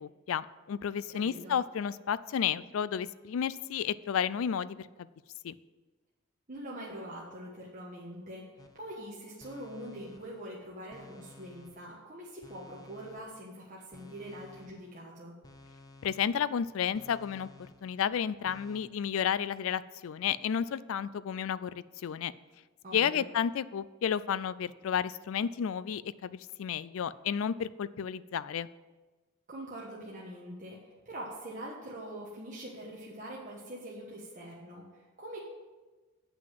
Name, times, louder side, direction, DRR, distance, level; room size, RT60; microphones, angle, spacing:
voice 1, 0.0-5.1 5.4-5.5 16.0-17.5 17.8-21.7 22.0-22.3 22.9-28.7, left 8 dB, 65° left, 17 dB, 0.3 m, -32 dB
voice 2, 1.1-1.6 6.5-8.5 8.7-15.4 22.8-23.2 29.5-35.4, right 1 dB, 35° right, -5 dB, 1.3 m, -44 dB
sound 1, 8.6-9.0 9.4-10.5 10.9-12.0 12.4-13.5 13.9-15.0 15.4-16.6 16.9-18.1 18.5-18.8, left 2 dB, 15° left, 0.5 m, -55 dB
7.8 x 6.0 x 7.7 m, 1.3 s
head